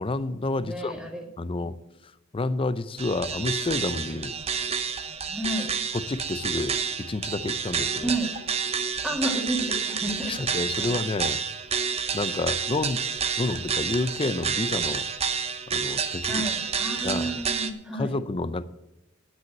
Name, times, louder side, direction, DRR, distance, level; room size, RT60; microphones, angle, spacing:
voice 1, 0.0-1.0 1.4-1.8 2.3-4.4 5.9-8.1 10.3-11.4 12.1-13.0 13.4-15.1 15.7-16.4 17.0-17.4 17.9-18.6, left 2 dB, 25° left, 15 dB, 0.5 m, -29 dB
voice 2, 0.6-1.7 5.3-5.7 8.0-8.3 9.0-10.3 10.8-10.9 16.3-18.2, right 1 dB, 5° right, 1 dB, 2.0 m, -31 dB
sound 1, 3.0-17.7, right 6 dB, 30° right, 0.8 m, -29 dB
10.5 x 6.4 x 8.5 m, 0.90 s
head